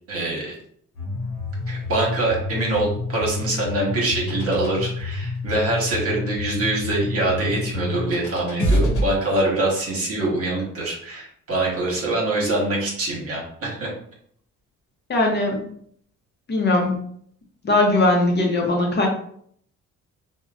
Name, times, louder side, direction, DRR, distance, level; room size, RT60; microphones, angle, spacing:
voice 1, 0.1-0.5 1.7-13.9, right 2 dB, 50° right, -3 dB, 1.1 m, -24 dB
sound 1, 0.9-9.0, left 2 dB, 80° left, 0.9 m, -27 dB
voice 2, 15.1-15.6 16.5-17.0 17.6-19.1, left 2 dB, 35° left, 0 dB, 0.7 m, -19 dB
2.8 x 2.2 x 2.3 m, 0.64 s
cardioid pair, 90°, 30 cm